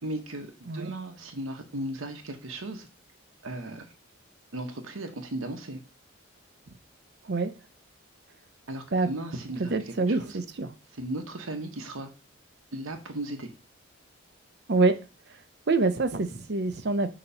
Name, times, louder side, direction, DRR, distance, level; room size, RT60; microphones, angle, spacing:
voice 1, 0.0-2.9 3.4-3.9 4.5-5.8 8.7-10.4 10.9-12.1 12.7-13.5, right 1 dB, 80° right, 5 dB, 1.0 m, -36 dB
voice 2, 9.6-10.7 14.7-14.9 15.7-17.1, right 3 dB, 55° right, 11 dB, 0.6 m, -25 dB
6.8 x 3.0 x 5.5 m, 0.31 s
head